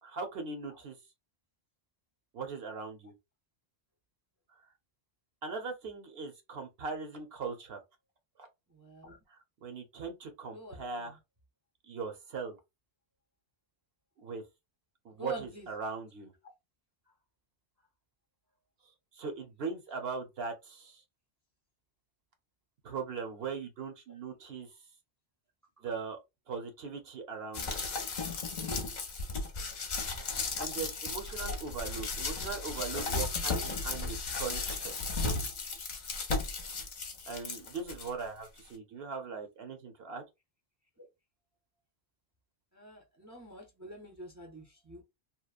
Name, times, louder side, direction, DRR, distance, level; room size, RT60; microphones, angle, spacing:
voice 1, 0.0-0.9 2.3-3.1 5.4-7.8 8.4-8.5 9.3-11.2 11.9-12.6 14.2-14.4 15.0-16.3 19.1-21.0 22.8-24.7 25.8-26.2 26.5-27.8 30.3-34.9 37.3-40.2, right 5 dB, 75° right, 0.9 m, -40 dB
voice 2, 8.7-9.2 10.5-10.9 15.2-15.7 41.0-41.1 42.7-45.0, equal, 20° right, 0.5 m, -46 dB
sound 1, 27.5-38.1 38.6-38.7, left 3 dB, 50° left, 0.7 m, -35 dB
2.9 x 2.0 x 2.4 m
omnidirectional pair, 1.0 m